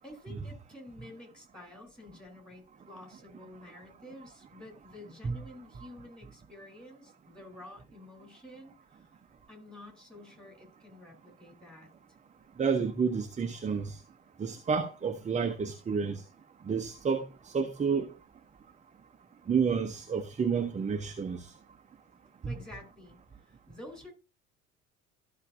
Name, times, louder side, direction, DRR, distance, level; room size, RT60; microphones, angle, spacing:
voice 1, 0.0-9.1 9.5-11.9 22.5-23.2 23.4-24.1, left 1 dB, ahead, 3.6 m, -50 dB
voice 2, 12.6-14.0 14.4-16.2 16.7-18.1 19.5-21.5 22.4-22.5, right 6 dB, 15° right, 0.8 m, -30 dB
13.5 x 5.8 x 2.7 m
figure-of-eight pair, 60°, 41 cm